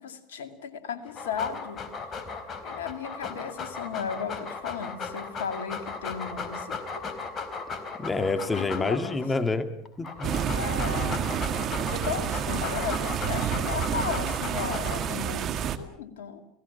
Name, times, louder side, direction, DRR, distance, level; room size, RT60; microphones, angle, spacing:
voice 1, 0.0-1.8 2.6-7.1 8.5-9.2 10.6-11.3 11.8-16.4, left 7 dB, 80° left, 7 dB, 2.4 m, -35 dB
Dog, 1.1-9.3 9.9-15.3, left 4 dB, 40° left, 3.9 m, -37 dB
voice 2, 8.0-9.7 10.0-10.6, left 3 dB, 20° left, 9 dB, 2.2 m, -28 dB
sound 1, 10.2-15.8, right 8 dB, 45° right, 1.8 m, -29 dB
29.5 x 17.5 x 7.2 m, 0.75 s
hypercardioid pair, 80°, 0 cm